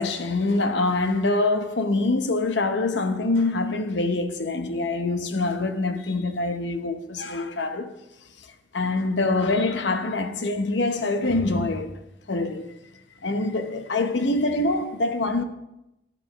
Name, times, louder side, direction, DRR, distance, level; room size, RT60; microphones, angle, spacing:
voice 1, 0.0-7.9 8.4-11.9 12.3-12.7 13.2-15.4, left 2 dB, 80° left, 0.9 m, -25 dB
12.0 x 11.0 x 3.0 m
head